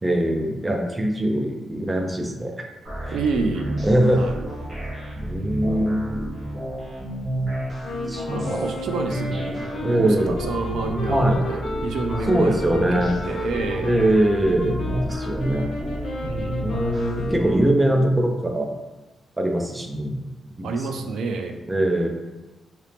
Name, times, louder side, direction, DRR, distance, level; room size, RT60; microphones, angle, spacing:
voice 1, 0.0-2.5 3.1-3.2 3.8-4.2 5.2-6.3 8.1-8.7 9.8-10.4 11.1-11.4 12.3-13.1 13.8-15.8 16.6-18.7 19.4-20.2 20.6-20.9 21.7-22.1, right 1 dB, 10° right, 2 dB, 0.3 m, -22 dB
sound 1, 2.8-17.6, equal, 30° right, 1.0 m, -31 dB
voice 2, 3.1-3.8 4.2-4.4 5.6-6.0 8.3-14.1 16.2-16.8 20.6-21.6, right 3 dB, 85° right, 5 dB, 0.3 m, -29 dB
sound 2, 7.8-17.9, left 2 dB, 65° left, 0.5 m, -32 dB
2.9 x 2.8 x 3.3 m, 1.1 s
wide cardioid pair, 175°, 0 cm